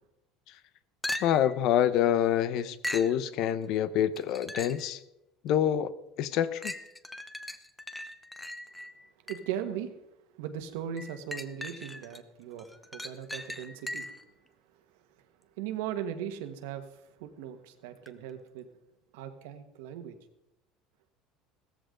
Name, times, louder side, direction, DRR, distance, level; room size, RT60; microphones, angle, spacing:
sound 1, 1.0-1.6 2.8-3.2 4.2-4.9 5.5-5.6 6.6-9.6 11.0-12.2 12.6-14.3 18.1-18.2, left 1 dB, 5° left, 0.9 m, -39 dB
voice 1, 1.2-5.0 5.4-5.9 6.2-6.7, left 10 dB, 60° left, 16 dB, 0.9 m, -26 dB
voice 2, 9.3-9.9 10.3-14.1 15.6-18.6 19.1-20.2, right 9 dB, 85° right, 7 dB, 1.7 m, -38 dB
16.5 x 14.0 x 3.9 m, 0.88 s
cardioid pair, 135°, 0 cm